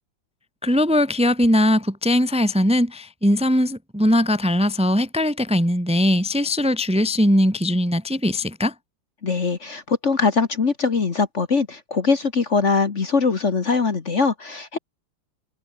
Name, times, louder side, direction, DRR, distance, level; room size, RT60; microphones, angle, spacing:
voice 1, 0.6-8.7, left 1 dB, 5° right, 1.4 m, -20 dB
voice 2, 9.2-14.8, left 4 dB, 40° left, 1.7 m, -22 dB
omnidirectional pair, 2.1 m